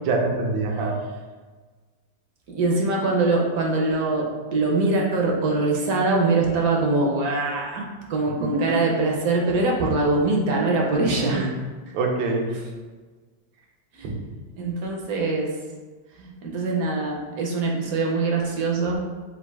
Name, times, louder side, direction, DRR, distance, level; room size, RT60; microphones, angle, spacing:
voice 1, 0.1-1.0 8.5-8.6 10.9-11.5 11.9-12.4 14.0-14.1, right 3 dB, 80° right, 1 dB, 1.4 m, -25 dB
voice 2, 2.5-11.5 13.9-14.1 14.6-15.6 16.2-18.9, right 3 dB, 60° right, -1 dB, 1.0 m, -23 dB
4.1 x 2.5 x 4.5 m, 1.4 s
omnidirectional pair, 2.0 m